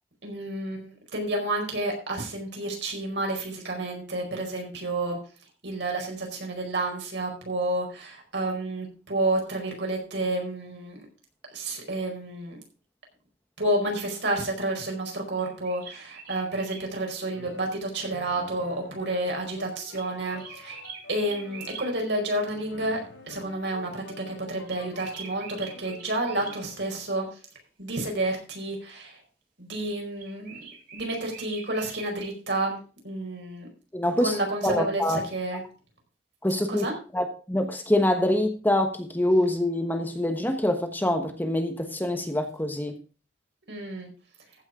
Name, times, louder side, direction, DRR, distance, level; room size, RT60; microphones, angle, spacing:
voice 1, 0.2-5.2 5.6-11.1 11.5-12.6 13.6-20.8 21.1-23.0 23.3-27.3 27.8-29.2 29.6-30.7 30.9-32.8 33.0-33.7 34.2-35.6 36.7-36.9 43.7-44.1, right 1 dB, 65° right, 1 dB, 4.8 m, -30 dB
sound 1, 15.4-16.9 19.9-21.9 24.7-26.6 30.2-32.3, right 6 dB, 50° right, 4.0 m, -43 dB
sound 2, 17.3-22.1 22.5-26.9, left 3 dB, 90° left, 3.8 m, -48 dB
voice 2, 33.9-35.2 36.4-43.0, left 1 dB, 10° left, 6 dB, 1.2 m, -25 dB
15.0 x 6.4 x 4.9 m, 0.36 s
head